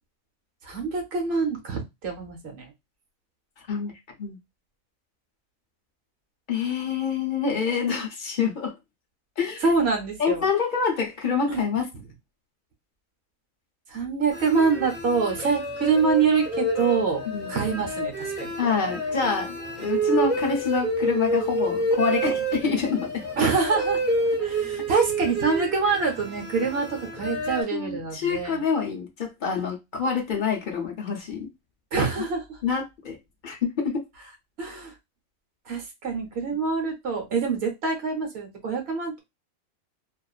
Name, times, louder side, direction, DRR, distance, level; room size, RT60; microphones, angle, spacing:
voice 1, 0.6-2.7 9.6-10.5 11.5-11.6 13.9-18.5 23.4-24.0 24.4-28.6 31.9-32.6 34.6-34.9 35.7-39.2, right 5 dB, 55° right, 1.0 m, -25 dB
voice 2, 6.5-8.7 9.4-9.6 10.2-11.9 17.3-17.5 18.6-23.2 27.7-31.5 32.2-32.3 32.6-33.2 33.4-34.0, left 6 dB, 45° left, 0.7 m, -26 dB
sound 1, 14.3-27.6, right 2 dB, 10° right, 0.8 m, -28 dB
2.5 x 2.4 x 2.3 m
omnidirectional pair, 1.4 m